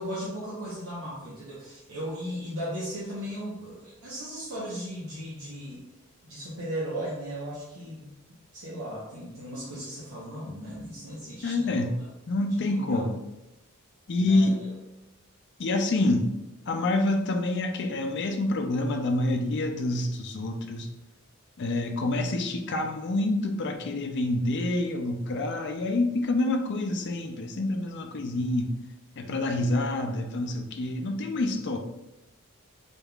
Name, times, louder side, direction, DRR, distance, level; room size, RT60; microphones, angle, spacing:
voice 1, 0.0-5.8 6.2-8.1 8.5-12.1 12.6-13.1 14.2-14.7, equal, 70° right, -7 dB, 1.0 m, -37 dB
voice 2, 11.4-11.9 12.3-13.2 14.1-14.6 15.6-16.3 16.7-20.9 21.6-28.7 29.2-31.8, left 2 dB, 55° left, 4 dB, 0.5 m, -27 dB
4.2 x 3.5 x 2.3 m, 0.92 s
head